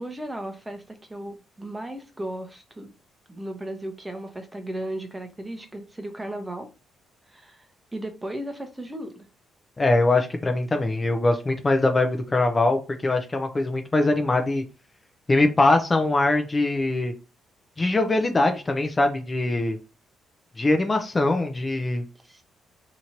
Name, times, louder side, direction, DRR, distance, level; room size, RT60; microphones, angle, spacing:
voice 1, 0.0-2.9 3.3-6.7 7.3-7.7 7.9-9.3 22.2-22.4, right 1 dB, 15° right, 0.8 m, -35 dB
voice 2, 9.8-14.6 15.3-17.1 17.8-19.8 20.6-22.0, left 2 dB, 25° left, 0.5 m, -22 dB
2.9 x 2.6 x 4.3 m
cardioid pair, 90°, 0 cm